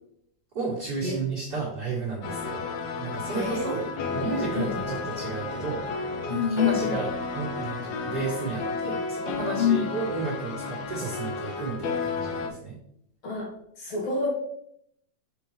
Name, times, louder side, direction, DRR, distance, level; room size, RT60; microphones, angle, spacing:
voice 1, 0.5-2.6 3.0-12.8, right 4 dB, 40° right, -6 dB, 1.4 m, -33 dB
sound 1, 2.2-12.5, left 4 dB, 80° left, 1.5 m, -32 dB
voice 2, 3.3-3.8 4.5-4.8 6.3-6.9 9.6-9.8 13.2-13.5 13.8-14.3, left 6 dB, 55° left, -4 dB, 3.3 m, -27 dB
6.7 x 5.4 x 3.2 m, 0.70 s
omnidirectional pair, 3.8 m